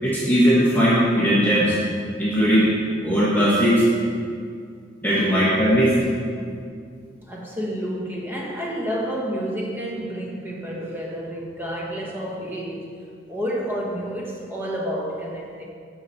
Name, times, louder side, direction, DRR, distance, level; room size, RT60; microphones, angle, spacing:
voice 1, 0.0-1.8 2.2-2.7 3.0-3.8 5.0-6.0, equal, 10° left, 1.3 m, -18 dB
voice 2, 5.1-5.4 6.3-6.5 7.2-12.9 13.3-15.6, equal, 10° right, 1.1 m, -30 dB
8.6 x 4.8 x 5.5 m
head